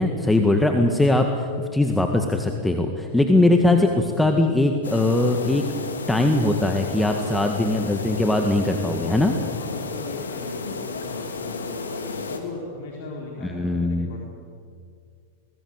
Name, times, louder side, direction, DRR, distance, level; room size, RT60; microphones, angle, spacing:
voice 1, 0.0-5.6 6.1-9.4 13.4-14.1, left 2 dB, 5° left, 4 dB, 1.9 m, -21 dB
sound 1, 4.8-12.4, left 4 dB, 85° left, 2.8 m, -32 dB
voice 2, 9.5-14.2, left 3 dB, 60° left, -1 dB, 4.2 m, -38 dB
23.5 x 20.0 x 8.2 m, 2.2 s
hypercardioid pair, 100°, 0 cm